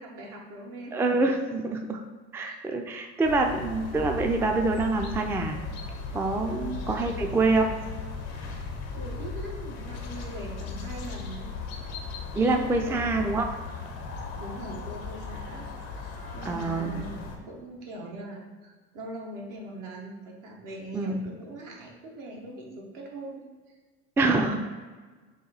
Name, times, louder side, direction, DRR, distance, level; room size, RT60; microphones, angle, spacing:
voice 1, 0.0-1.0 2.4-2.6 3.3-3.6 6.4-7.8 8.5-11.6 12.3-13.1 14.3-23.4, right 1 dB, 70° right, -1 dB, 1.1 m, -42 dB
voice 2, 0.9-2.0 2.3-5.6 6.1-7.7 12.4-13.5 16.4-16.9 20.9-21.2 24.2-24.6, right 3 dB, 10° right, 4 dB, 0.3 m, -26 dB
sound 1, 3.2-17.4, left 4 dB, 85° left, 0.7 m, -37 dB
4.2 x 2.3 x 3.9 m, 1.4 s
supercardioid pair, 75°, 32 cm